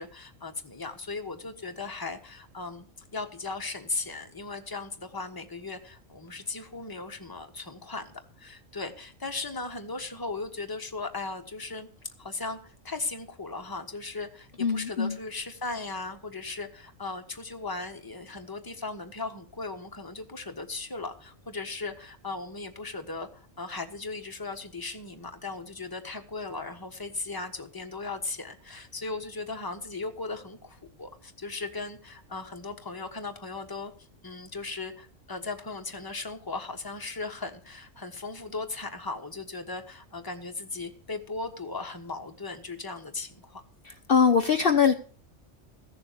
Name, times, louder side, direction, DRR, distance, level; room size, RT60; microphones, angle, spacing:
voice 1, 0.0-2.9 3.1-11.9 12.2-33.9 34.2-43.6, left 3 dB, 15° left, 5 dB, 1.4 m, -37 dB
voice 2, 14.6-15.2 43.8-44.9, left 6 dB, 50° left, 5 dB, 1.0 m, -22 dB
15.5 x 7.0 x 6.7 m, 0.42 s
omnidirectional pair, 1.3 m